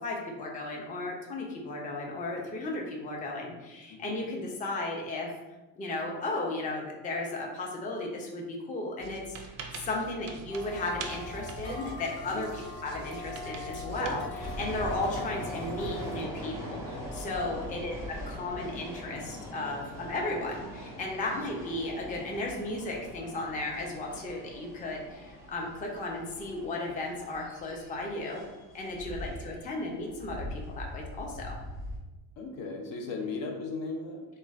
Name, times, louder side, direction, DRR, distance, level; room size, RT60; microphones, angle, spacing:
voice 1, 0.0-5.3 5.8-28.4 28.7-31.6, left 2 dB, 15° left, 0 dB, 0.4 m, -35 dB
sound 1, 9.0-15.3, right 4 dB, 40° right, 0.4 m, -43 dB
sound 2, 10.5-16.2, left 3 dB, 35° left, 0.9 m, -41 dB
sound 3, 14.4-32.0, equal, 5° right, 0.8 m, -42 dB
voice 2, 29.1-29.4 32.4-34.3, left 3 dB, 60° left, 2 dB, 0.6 m, -37 dB
3.1 x 2.1 x 2.3 m, 1.1 s
hypercardioid pair, 60°, 50 cm